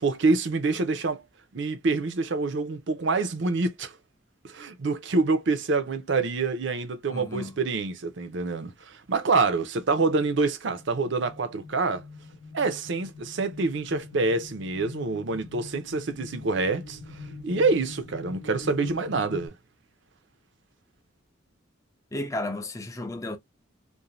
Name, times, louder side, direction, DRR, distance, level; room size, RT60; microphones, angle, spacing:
voice 1, 0.0-1.2 1.5-3.9 4.4-12.0 12.5-17.0 17.4-19.5, right 3 dB, 65° right, 0.6 m, -26 dB
voice 2, 7.1-7.6 22.1-23.4, left 2 dB, 15° left, 0.4 m, -33 dB
sound 1, 10.7-19.5, left 3 dB, 75° left, 0.7 m, -43 dB
2.6 x 2.1 x 2.9 m
head